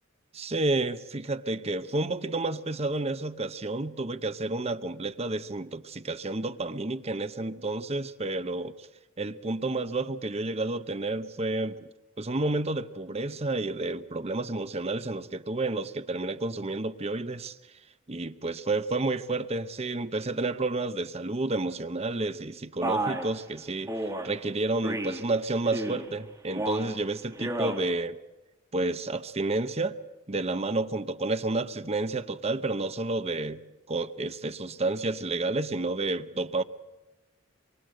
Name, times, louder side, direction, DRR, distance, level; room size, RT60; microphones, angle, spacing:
voice 1, 0.3-8.9 9.2-11.9 12.2-17.6 18.1-23.9 24.2-28.2 28.7-30.0 30.3-33.6 33.9-36.6, right 2 dB, 30° right, 0.9 m, -30 dB
Male speech man speaking, 22.8-23.3 23.9-24.3 24.8-25.2 25.6-26.1 26.5-26.9 27.3-27.8, right 1 dB, 15° right, 2.7 m, -31 dB
25.0 x 24.0 x 7.8 m
head